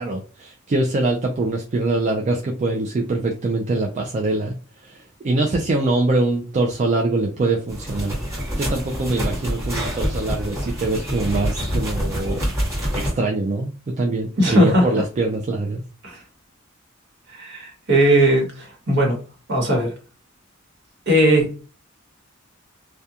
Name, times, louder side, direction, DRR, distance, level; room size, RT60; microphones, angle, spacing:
voice 1, 0.0-4.5 4.8-5.0 5.2-8.2 8.6-12.5 12.9-13.7 14.0-15.8, right 2 dB, 35° right, 1 dB, 0.3 m, -23 dB
sound 1, 7.7-13.1, equal, 15° right, 1.1 m, -26 dB
voice 2, 14.4-14.9 16.0-16.2 17.3-19.2 19.5-19.9 21.1-21.5, right 1 dB, 60° right, 1 dB, 1.1 m, -18 dB
2.3 x 2.2 x 2.7 m, 0.34 s
head